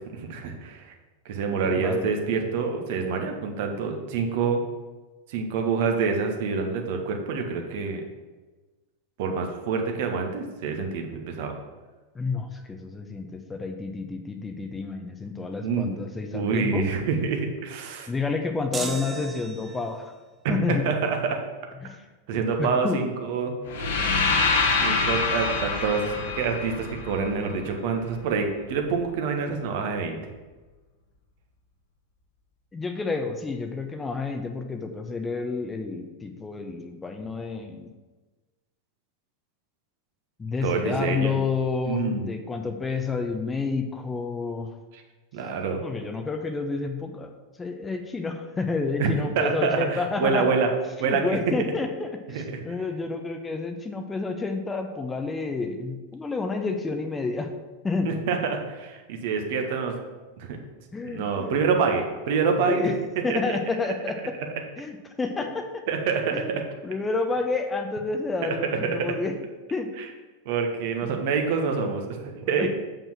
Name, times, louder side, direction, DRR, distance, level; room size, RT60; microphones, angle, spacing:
voice 1, 0.1-0.9 1.3-4.6 5.3-8.0 9.2-11.5 15.6-15.9 16.3-18.1 20.4-21.4 22.3-23.5 24.8-30.2 40.6-41.4 41.8-42.3 44.9-45.0 45.3-45.8 49.0-50.7 51.0-51.5 52.3-52.6 58.0-59.9 60.4-60.6 61.0-62.8 63.3-63.4 65.9-66.6 68.4-68.5 68.8-69.0 70.4-72.7, right 5 dB, 50° right, 4 dB, 1.3 m, -26 dB
voice 2, 1.6-2.1 12.1-16.9 18.1-20.1 20.5-20.8 21.8-22.1 22.3-23.0 24.5-24.6 32.7-37.9 40.4-44.7 45.8-47.3 47.6-50.5 51.0-57.5 57.8-58.1 60.9-61.5 62.5-62.9 63.2-64.3 64.8-65.8 66.3-69.3 69.7-69.9 71.0-71.2 72.4-72.7, left 4 dB, 15° left, 5 dB, 0.8 m, -30 dB
sound 1, 18.7-20.0, right 4 dB, 20° right, 0.9 m, -35 dB
sound 2, 23.7-27.7, left 4 dB, 55° left, 1.3 m, -25 dB
7.3 x 5.5 x 6.0 m, 1.2 s
figure-of-eight pair, 90°, 0 cm